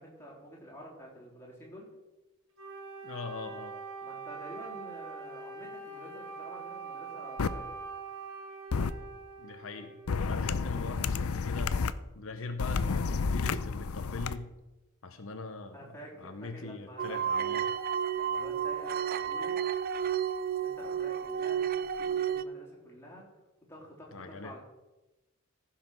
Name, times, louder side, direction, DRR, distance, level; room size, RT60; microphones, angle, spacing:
voice 1, 0.0-1.9 4.0-7.7 15.7-17.7 18.1-19.6 20.6-23.2 23.7-24.6, equal, 10° left, -4 dB, 3.4 m, -49 dB
Wind instrument woodwind instrument, 2.6-10.3, right 4 dB, 65° right, 3.0 m, -43 dB
voice 2, 3.0-3.8 9.4-11.8 12.1-14.5 15.0-17.6 24.1-24.6, left 3 dB, 70° left, 7 dB, 0.9 m, -41 dB
sound 1, 7.4-7.5 8.7-8.9 10.1-11.9 12.6-14.3, left 5 dB, 90° left, 0.6 m, -30 dB
sound 2, 17.0-22.4, right 8 dB, 45° right, 0.4 m, -31 dB
15.0 x 5.8 x 6.1 m, 1.0 s
head